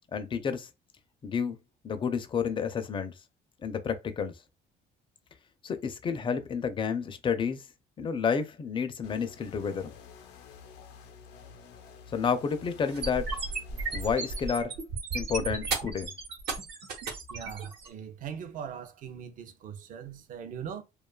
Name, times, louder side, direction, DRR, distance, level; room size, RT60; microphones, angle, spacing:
voice 1, 0.1-0.7 1.2-1.6 1.8-3.1 3.6-4.3 5.6-7.6 8.0-9.9 12.1-13.3 13.9-14.7 15.1-16.1, left 6 dB, 30° left, 0.4 m, -30 dB
sound 1, 9.0-14.5, left 6 dB, 90° left, 0.5 m, -50 dB
sound 2, 12.9-17.9, right 4 dB, 75° right, 0.9 m, -34 dB
voice 2, 17.3-20.8, right 8 dB, 55° right, 0.5 m, -40 dB
2.6 x 2.3 x 2.2 m
cardioid pair, 110°, 17 cm